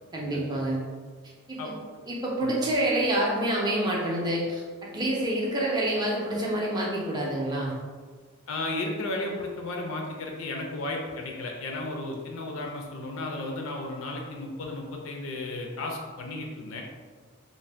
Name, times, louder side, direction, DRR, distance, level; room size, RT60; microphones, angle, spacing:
voice 1, 0.1-0.8 1.5-1.8 2.1-7.7, right 1 dB, 20° right, -4 dB, 0.4 m, -27 dB
voice 2, 8.5-16.8, left 2 dB, 65° left, 1 dB, 0.4 m, -34 dB
2.6 x 2.1 x 3.2 m, 1.5 s
head